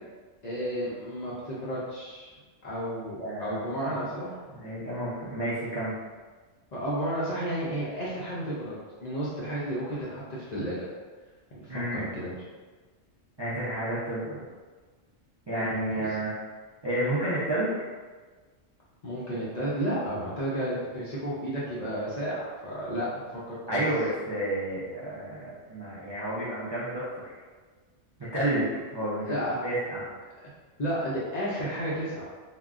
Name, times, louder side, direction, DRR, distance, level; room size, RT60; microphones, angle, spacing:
voice 1, 0.4-2.3 2.6-4.3 6.7-10.8 11.6-12.4 15.5-16.1 19.0-23.8 29.2-29.6 30.8-32.2, equal, 50° left, -8 dB, 0.5 m, -32 dB
voice 2, 3.2-3.6 4.5-5.9 11.7-12.1 13.4-14.4 15.5-16.3 16.8-17.7 23.7-27.3 28.2-29.4 29.6-30.1, right 1 dB, 40° right, -9 dB, 0.4 m, -30 dB
3.5 x 2.1 x 2.4 m, 1.4 s
omnidirectional pair, 1.2 m